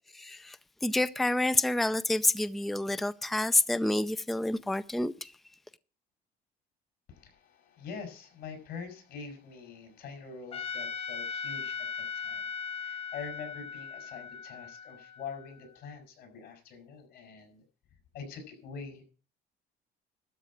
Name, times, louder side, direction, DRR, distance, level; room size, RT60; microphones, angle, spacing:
voice 1, 0.1-0.6 0.8-5.3, left 2 dB, ahead, 0.4 m, -28 dB
voice 2, 7.1-12.5 12.8-17.6 18.1-19.0, left 5 dB, 80° left, 5.4 m, -44 dB
Trumpet, 10.5-15.7, left 6 dB, 35° left, 0.9 m, -38 dB
12.5 x 5.1 x 8.6 m
cardioid pair, 110°, 17 cm